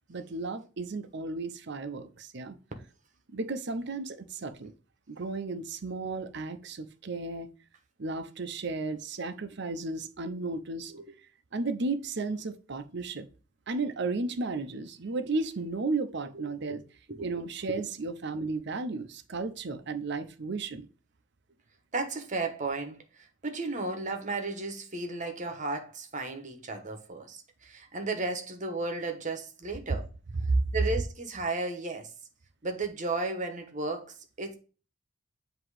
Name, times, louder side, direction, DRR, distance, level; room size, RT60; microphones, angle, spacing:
voice 1, 0.1-2.6 3.3-4.7 5.1-7.5 8.0-10.9 11.5-13.3 13.7-16.8 17.2-20.9 30.5-30.6, right 3 dB, 60° right, 0.7 m, -33 dB
voice 2, 21.9-30.1 30.7-32.1 32.6-34.5, right 3 dB, 40° right, 1.2 m, -34 dB
7.8 x 3.0 x 4.8 m
head